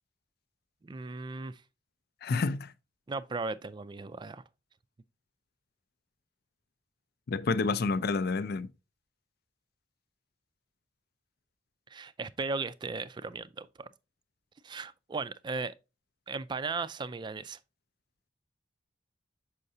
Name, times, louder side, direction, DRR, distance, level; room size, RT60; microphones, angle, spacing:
voice 1, 0.8-1.6 3.1-4.4 11.9-13.9 14.6-15.7 16.3-17.6, right 4 dB, 25° right, 0.3 m, -36 dB
voice 2, 2.2-2.7 7.3-8.7, left 4 dB, 55° left, 0.4 m, -29 dB
6.5 x 5.6 x 2.7 m
head